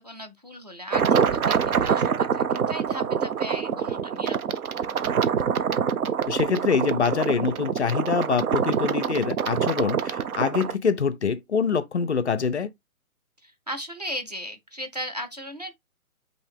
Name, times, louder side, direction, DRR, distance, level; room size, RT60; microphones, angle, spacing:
voice 1, 0.0-4.6 13.4-15.7, equal, 30° right, 0.5 m, -37 dB
sound 1, 0.9-10.7, right 7 dB, 70° right, 0.7 m, -25 dB
voice 2, 6.3-12.7, left 5 dB, 50° left, 0.5 m, -25 dB
5.4 x 2.8 x 3.4 m
hypercardioid pair, 170°, 45 cm